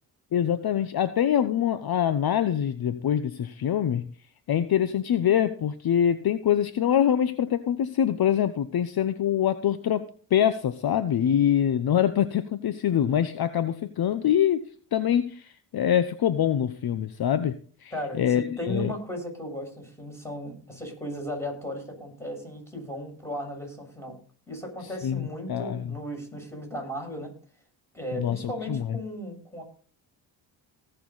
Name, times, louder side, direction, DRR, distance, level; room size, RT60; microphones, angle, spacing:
voice 1, 0.3-4.1 4.5-14.6 14.9-17.9 18.2-18.9 25.0-25.9 28.1-29.0, left 9 dB, 55° left, 12 dB, 0.9 m, -24 dB
voice 2, 17.9-24.2 24.5-27.3 27.9-29.6, equal, 5° left, 0 dB, 7.3 m, -36 dB
18.5 x 6.8 x 4.1 m, 0.43 s
cardioid pair, 70°, 46 cm